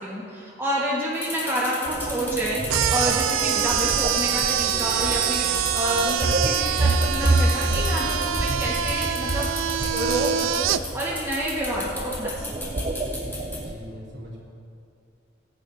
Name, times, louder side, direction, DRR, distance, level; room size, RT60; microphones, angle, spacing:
voice 1, 0.0-9.5 9.8-12.5, right 1 dB, 15° right, -6 dB, 1.5 m, -28 dB
sound 1, 1.1-13.6, left 2 dB, 10° left, 3.1 m, -34 dB
sound 2, 1.8-13.7, right 2 dB, 30° right, 0.7 m, -28 dB
sound 3, 2.7-10.8, right 10 dB, 85° right, 0.4 m, -25 dB
voice 2, 13.6-14.4, equal, 60° right, -6 dB, 3.1 m, -42 dB
20.0 x 9.6 x 2.8 m, 2.5 s
head